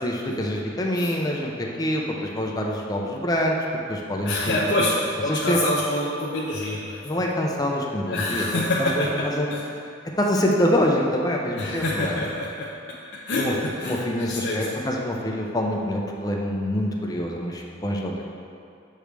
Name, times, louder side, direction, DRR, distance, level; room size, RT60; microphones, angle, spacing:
voice 1, 0.0-3.6 3.9-4.7 5.3-5.6 7.0-9.5 10.2-12.3 13.3-13.5 13.8-18.2, left 1 dB, 20° left, -1 dB, 0.6 m, -25 dB
voice 2, 4.2-7.2 8.1-9.6 11.5-12.7 13.1-14.7, left 1 dB, 65° left, -6 dB, 0.7 m, -26 dB
7.5 x 5.0 x 3.4 m, 2.5 s
head